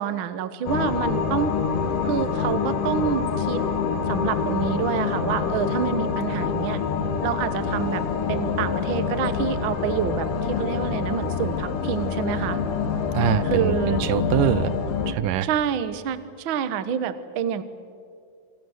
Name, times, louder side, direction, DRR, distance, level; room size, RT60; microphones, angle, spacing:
voice 1, 0.0-1.5 2.0-3.6 4.1-6.8 7.2-8.0 8.3-12.6 13.4-14.0 15.4-17.6, right 8 dB, 70° right, 12 dB, 1.2 m, -27 dB
sound 1, 0.7-15.1, left 6 dB, 75° left, 3.1 m, -26 dB
voice 2, 13.1-14.7 15.1-15.5, right 12 dB, 85° right, 16 dB, 2.5 m, -24 dB
27.5 x 25.5 x 6.4 m, 2.3 s
omnidirectional pair, 3.8 m